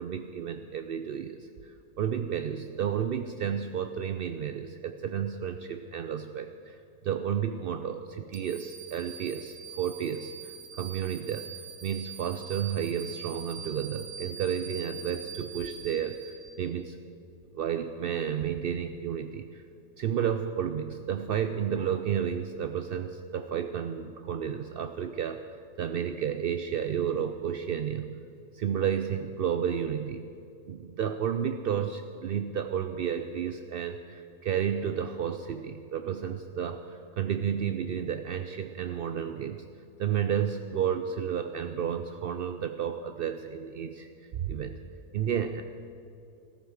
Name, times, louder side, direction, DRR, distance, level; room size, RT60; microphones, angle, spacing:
voice 1, 0.0-11.5 11.8-17.0 17.5-19.6 20.0-28.1 28.5-30.3 30.7-39.6 40.0-44.1 44.4-44.8 45.1-45.6, right 8 dB, 70° right, 8 dB, 0.5 m, -32 dB
sound 1, 8.3-16.8, right 7 dB, 50° right, 1.1 m, -44 dB
14.0 x 13.0 x 6.4 m, 2.6 s
omnidirectional pair, 1.5 m